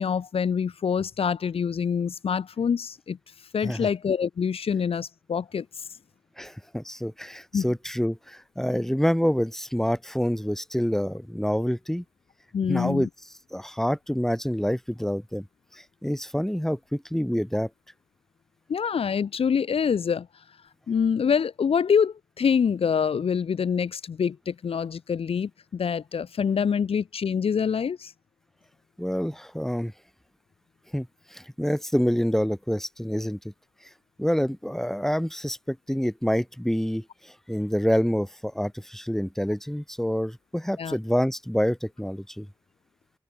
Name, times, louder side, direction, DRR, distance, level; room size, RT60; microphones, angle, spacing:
voice 1, 0.0-3.2 3.5-5.8 7.5-7.7 12.5-13.1 18.7-20.3 20.9-28.1 40.8-41.0, left 6 dB, 80° left, 0.5 m, -25 dB
voice 2, 6.4-12.0 12.7-13.1 13.5-15.5 16.0-17.7 29.0-29.9 30.9-33.4 34.2-42.5, equal, 5° left, 3.1 m, -27 dB
open air
cardioid pair, 45°, 10 cm